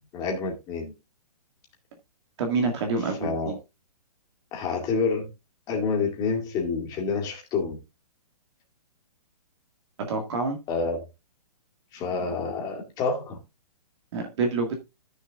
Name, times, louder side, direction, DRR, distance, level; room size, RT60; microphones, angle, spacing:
voice 1, 0.1-0.9 3.2-3.6 4.5-5.3 5.7-7.8 10.7-11.0 11.9-13.4, left 4 dB, 20° left, 2.1 m, -28 dB
voice 2, 2.4-3.5 10.0-10.6 14.1-14.7, right 3 dB, 45° right, 1.9 m, -27 dB
14.0 x 6.6 x 2.4 m
hypercardioid pair, 160°, 20 cm